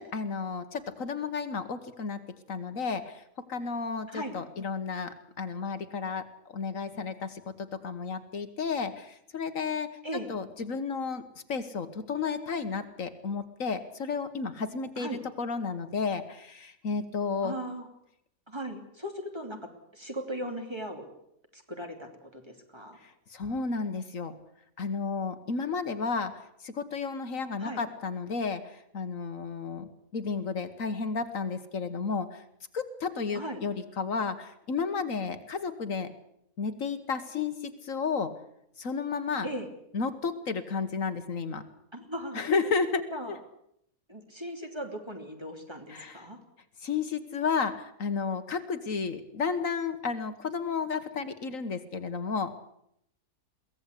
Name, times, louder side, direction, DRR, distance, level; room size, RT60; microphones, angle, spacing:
voice 1, 0.0-2.2 2.5-3.2 3.5-9.9 10.3-11.2 11.5-17.5 23.0-24.3 24.8-26.3 26.6-32.4 32.7-36.1 36.6-38.3 38.8-39.5 39.9-41.6 42.3-43.1 45.9-46.3 46.8-52.6, left 5 dB, 65° left, 9 dB, 1.7 m, -32 dB
voice 2, 17.4-17.9 18.5-21.1 21.5-23.0 27.6-27.8 33.3-33.6 39.4-39.7 41.9-42.4 43.1-43.4 44.1-46.4, equal, 20° right, 3 dB, 3.0 m, -38 dB
23.0 x 17.0 x 8.3 m, 0.75 s
omnidirectional pair, 1.5 m